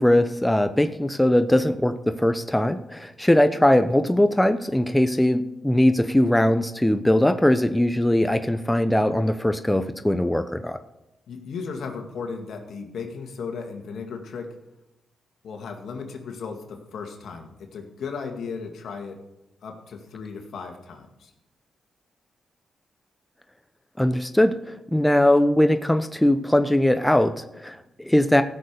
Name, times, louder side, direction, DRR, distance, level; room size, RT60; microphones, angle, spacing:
voice 1, 0.0-10.8 24.0-24.6 24.9-28.4, left 1 dB, 5° left, 9 dB, 0.7 m, -20 dB
voice 2, 11.3-14.6 15.4-19.2 19.6-21.3, left 5 dB, 75° left, 3 dB, 2.1 m, -35 dB
15.5 x 6.6 x 6.8 m, 0.91 s
cardioid pair, 70°, 0 cm